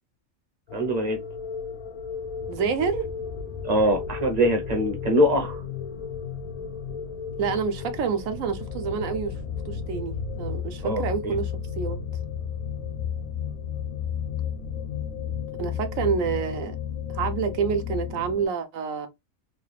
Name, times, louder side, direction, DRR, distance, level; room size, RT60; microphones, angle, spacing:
sound 1, 0.7-18.4, left 7 dB, 90° left, 1.1 m, -33 dB
voice 1, 0.7-1.2 3.6-5.6 10.8-11.0, equal, 40° right, 0.7 m, -23 dB
voice 2, 2.5-3.1 7.4-9.4 9.6-12.0 15.6-16.8 17.1-19.1, right 6 dB, 75° right, 1.1 m, -28 dB
3.5 x 2.4 x 3.2 m
omnidirectional pair, 1.4 m